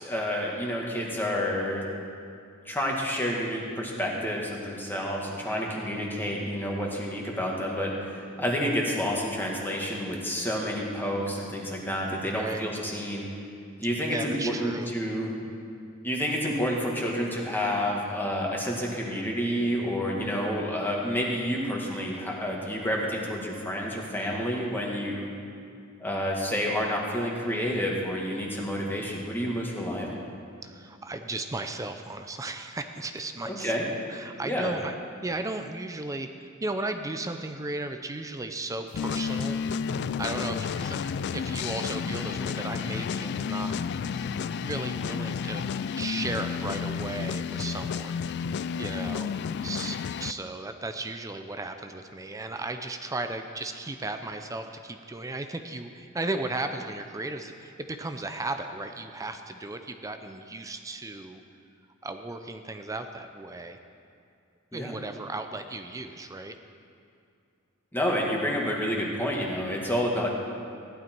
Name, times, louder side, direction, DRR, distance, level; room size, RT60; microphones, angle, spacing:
voice 1, 0.0-1.9 2.7-13.3 13.8-15.4 16.0-25.3 26.0-30.2 33.5-33.9 34.4-34.7 64.7-64.9 67.9-70.3, equal, 10° left, -2 dB, 1.9 m, -29 dB
voice 2, 14.1-14.9 30.6-33.7 34.1-34.9 35.2-39.6 40.2-43.7 44.6-48.2 48.8-49.3 49.6-61.4 62.0-63.8 64.7-66.6, right 2 dB, 15° right, 7 dB, 0.5 m, -35 dB
sound 1, 38.9-50.3, left 6 dB, 55° left, 0.3 m, -31 dB
15.5 x 11.5 x 4.6 m, 2.4 s
head